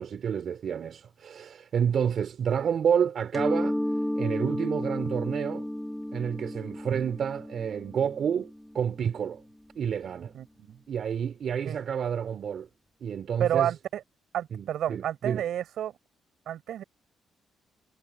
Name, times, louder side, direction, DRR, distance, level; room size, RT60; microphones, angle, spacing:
voice 1, 0.0-3.8 4.2-5.7 6.1-9.4 9.8-10.3 10.9-12.7 13.0-13.7 14.5-15.4, right 8 dB, 60° right, 3.0 m, -29 dB
Mallet percussion, 3.3-8.9, left 1 dB, 5° left, 1.8 m, -32 dB
voice 2, 10.3-10.8 11.6-11.8 13.4-14.0 14.3-16.0 16.5-16.8, right 11 dB, 75° right, 4.6 m, -30 dB
cardioid pair, 95°, 0 cm